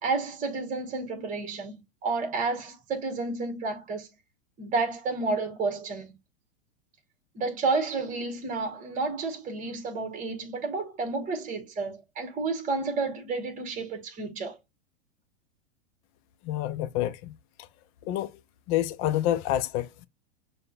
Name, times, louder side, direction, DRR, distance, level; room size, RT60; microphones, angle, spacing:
voice 1, 0.0-1.7 2.0-4.1 4.6-6.1 7.3-14.6, right 3 dB, 25° right, 1.1 m, -31 dB
voice 2, 16.4-17.3 18.1-18.3 18.7-20.1, left 12 dB, 40° left, 0.5 m, -28 dB
6.4 x 2.3 x 2.4 m
hypercardioid pair, 110°, 32 cm